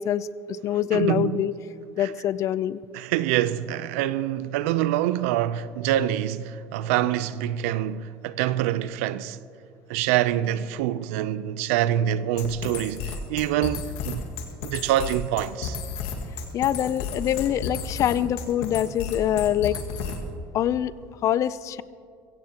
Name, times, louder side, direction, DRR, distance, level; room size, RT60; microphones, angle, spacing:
voice 1, 0.0-1.5 2.0-2.8 16.5-19.8 20.5-20.9 21.2-21.8, left 11 dB, 50° left, 0.5 m, -25 dB
voice 2, 0.9-1.5 2.0-2.1 2.9-9.4 9.9-14.2 14.6-15.8, right 12 dB, 90° right, 0.5 m, -25 dB
sound 1, 12.4-20.4, left 5 dB, 85° left, 1.9 m, -33 dB
23.5 x 16.0 x 2.9 m
supercardioid pair, 115°, 7 cm